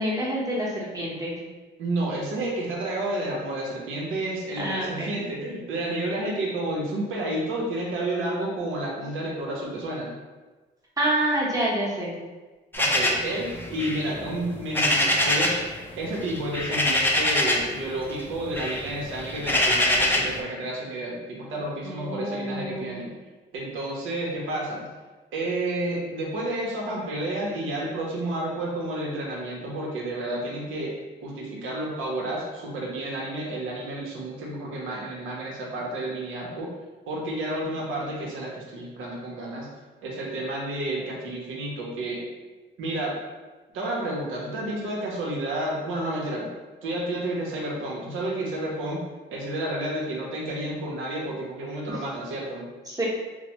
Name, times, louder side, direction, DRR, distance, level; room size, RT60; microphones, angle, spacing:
voice 1, 0.0-1.4 4.6-5.1 11.0-12.1 21.8-23.0 52.9-53.1, right 1 dB, 20° right, -5 dB, 0.9 m, -27 dB
voice 2, 1.8-10.1 12.8-15.6 16.0-23.1 23.5-24.8 25.3-30.9 31.2-36.7 37.1-39.7 40.0-42.3 42.8-43.2 43.7-46.5 46.8-49.0 49.3-52.7, right 1 dB, 85° right, -2 dB, 0.8 m, -30 dB
sound 1, 12.7-15.7 15.9-17.8 18.1-20.4, left 1 dB, 10° left, 0.4 m, -24 dB
3.0 x 2.0 x 2.9 m, 1.2 s
cardioid pair, 90°, 20 cm